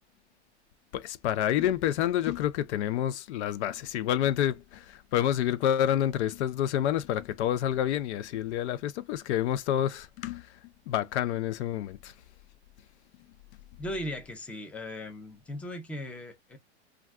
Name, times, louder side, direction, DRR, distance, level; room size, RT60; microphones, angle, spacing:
voice 1, 0.9-10.5 10.9-12.1, left 11 dB, 75° left, 0.5 m, -28 dB
voice 2, 13.8-16.6, left 1 dB, 5° left, 0.5 m, -38 dB
2.3 x 2.3 x 3.4 m
supercardioid pair, 135°, 34 cm